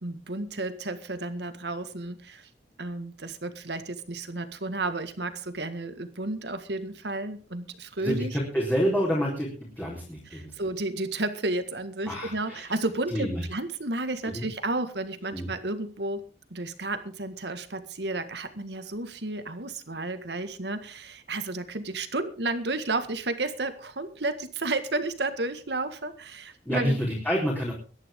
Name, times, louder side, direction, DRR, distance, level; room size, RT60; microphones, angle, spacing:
voice 1, 0.0-2.5 2.8-8.4 10.3-16.2 16.5-27.0, right 2 dB, 70° right, 9 dB, 1.8 m, -32 dB
voice 2, 8.0-9.5 9.8-10.5 12.1-12.6 13.1-13.5 14.3-14.4 15.3-15.5 26.7-27.7, equal, 10° left, -5 dB, 4.1 m, -28 dB
23.0 x 10.5 x 3.8 m, 0.37 s
head